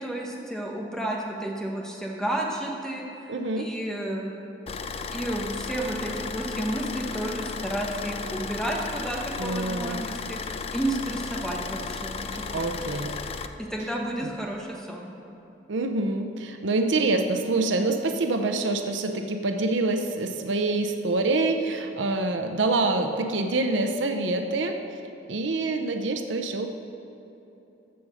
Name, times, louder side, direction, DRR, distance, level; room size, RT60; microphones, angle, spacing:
voice 1, 0.0-4.3 5.1-10.4 10.7-12.7 13.6-15.1, right 1 dB, 5° left, -1 dB, 1.1 m, -31 dB
voice 2, 3.3-3.7 9.4-10.0 12.5-13.1 15.7-24.8 25.3-26.7, right 2 dB, 90° right, 6 dB, 0.7 m, -26 dB
Car / Idling, 4.7-13.5, left 5 dB, 35° left, 0.3 m, -34 dB
15.0 x 5.0 x 6.3 m, 2.9 s
head